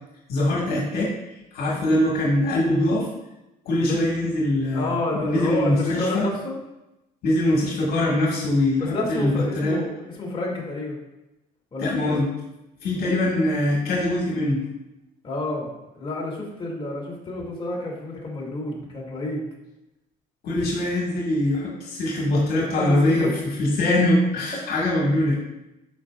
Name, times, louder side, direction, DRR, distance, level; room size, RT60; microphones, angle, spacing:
voice 1, 0.3-1.1 1.5-3.1 3.7-6.3 7.2-9.8 11.8-12.3 12.8-14.6 20.4-23.3 23.6-25.4, left 1 dB, 65° left, -4 dB, 2.0 m, -22 dB
voice 2, 4.7-6.6 8.8-11.0 11.7-12.2 15.2-19.5 22.7-23.4, left 2 dB, 30° left, -3 dB, 2.6 m, -29 dB
13.0 x 5.3 x 2.5 m, 0.94 s
cardioid pair, 110°, 17 cm